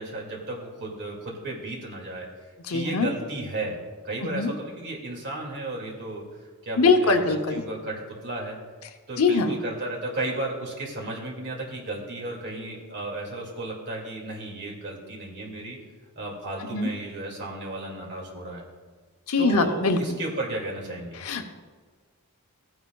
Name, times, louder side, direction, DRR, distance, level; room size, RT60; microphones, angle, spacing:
voice 1, 0.0-2.3 2.7-3.8 4.0-6.2 6.6-8.6 9.1-15.8 16.2-18.6 19.4-21.2, right 2 dB, 55° right, -1 dB, 2.3 m, -34 dB
voice 2, 2.7-3.1 4.3-4.5 6.8-7.6 9.2-9.5 16.7-16.9 19.3-20.2 21.2-21.5, left 3 dB, 70° left, 6 dB, 0.8 m, -22 dB
15.5 x 9.7 x 2.3 m, 1.5 s
head